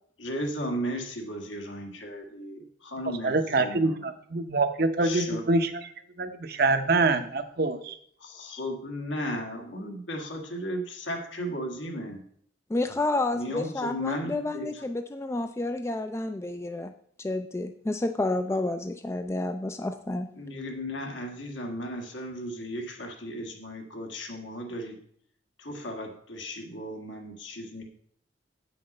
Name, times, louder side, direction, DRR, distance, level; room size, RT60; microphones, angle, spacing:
voice 1, 0.2-4.0 5.0-5.4 8.2-12.2 13.3-14.8 20.3-25.0 25.6-27.8, equal, 80° left, 2 dB, 1.8 m, -35 dB
voice 2, 3.2-5.9 6.2-7.9, right 3 dB, 55° right, 8 dB, 0.7 m, -25 dB
voice 3, 12.7-16.9 17.2-20.3, left 2 dB, 15° left, 8 dB, 0.3 m, -30 dB
8.4 x 5.9 x 5.2 m, 0.62 s
head